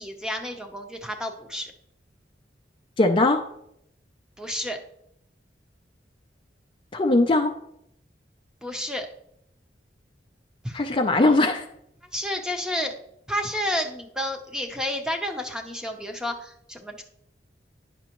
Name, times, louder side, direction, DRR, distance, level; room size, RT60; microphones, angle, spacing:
voice 1, 0.0-1.7 4.4-4.8 8.6-9.1 10.6-10.8 12.1-12.9 13.3-17.0, equal, 5° right, 4 dB, 0.7 m, -30 dB
voice 2, 3.0-3.5 6.9-7.6 10.7-11.6, left 2 dB, 30° left, 5 dB, 0.4 m, -20 dB
9.9 x 6.0 x 3.0 m, 0.75 s
head